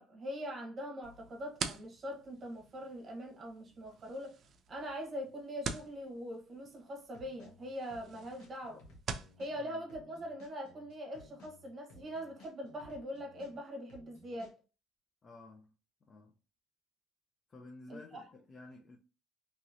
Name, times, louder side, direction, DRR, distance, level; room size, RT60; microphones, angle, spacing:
voice 1, 0.0-4.4 4.7-8.8 9.4-14.5 17.9-18.2, equal, 35° right, 1.1 m, -42 dB
sound 1, 1.0-9.4, right 6 dB, 50° right, 0.4 m, -46 dB
sound 2, 7.1-9.6 9.9-13.6 13.9-14.5, left 2 dB, 85° left, 1.2 m, -58 dB
voice 2, 15.2-15.7 16.0-16.3 17.5-19.0, left 2 dB, 35° left, 0.5 m, -53 dB
3.0 x 2.9 x 2.6 m
cardioid pair, 115°, 0 cm